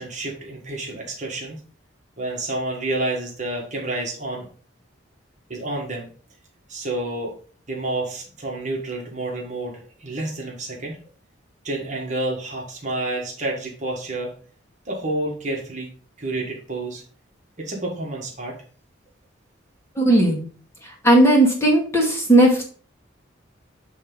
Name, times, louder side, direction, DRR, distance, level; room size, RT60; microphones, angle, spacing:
voice 1, 0.0-1.6 2.2-4.5 5.5-6.1 6.7-7.3 7.7-11.0 11.6-14.3 14.8-15.9 16.2-17.0 17.6-18.5, right 2 dB, 40° right, -1 dB, 1.6 m, -29 dB
voice 2, 20.0-20.4 21.0-22.6, right 1 dB, 15° left, -3 dB, 2.1 m, -16 dB
8.1 x 3.5 x 5.4 m, 0.42 s
head